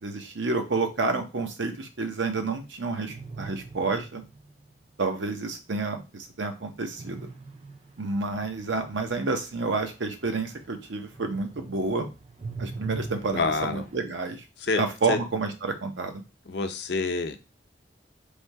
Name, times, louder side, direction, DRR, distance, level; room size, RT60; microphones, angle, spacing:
voice 1, 0.0-4.2 5.0-7.3 8.0-12.1 12.6-14.4 14.8-16.2, right 3 dB, 80° right, 6 dB, 0.8 m, -29 dB
sound 1, 3.1-4.7 7.0-10.8 11.1-14.0, right 3 dB, 30° right, 0.4 m, -41 dB
voice 2, 13.3-13.8 14.6-14.8 15.1-15.2 16.5-17.4, left 3 dB, 65° left, 7 dB, 0.6 m, -27 dB
3.5 x 2.7 x 4.6 m, 0.29 s
head